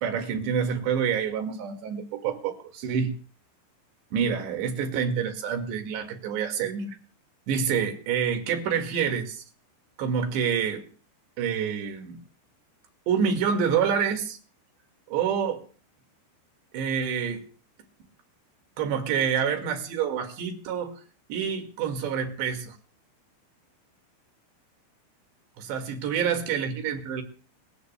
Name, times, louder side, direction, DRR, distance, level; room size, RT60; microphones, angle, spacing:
voice 1, 0.0-3.2 4.1-7.0 7.5-9.4 10.0-10.9 11.4-12.2 13.1-14.4 15.1-15.6 16.7-17.4 18.8-21.0 21.3-22.8 25.6-27.2, right 7 dB, 70° right, 5 dB, 3.9 m, -27 dB
28.5 x 14.5 x 2.2 m, 0.38 s
omnidirectional pair, 5.6 m